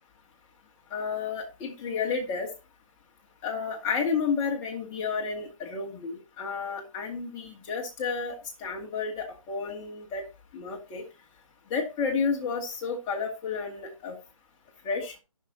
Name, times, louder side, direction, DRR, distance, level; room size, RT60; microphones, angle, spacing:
voice 1, 0.9-2.5 3.4-10.3 10.5-11.0 11.7-14.2 14.8-15.1, left 5 dB, 20° left, -1 dB, 2.3 m, -31 dB
16.5 x 6.5 x 2.9 m, 0.29 s
hypercardioid pair, 155°, 17 cm